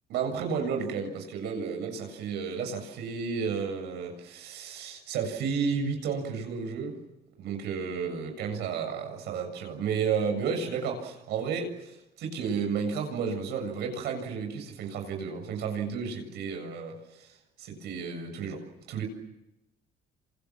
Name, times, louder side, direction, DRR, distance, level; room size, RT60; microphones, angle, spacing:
voice 1, 0.1-7.0 7.4-19.0, right 6 dB, 80° right, 4 dB, 7.4 m, -32 dB
29.0 x 27.5 x 7.5 m, 0.90 s
cardioid pair, 110°, 17 cm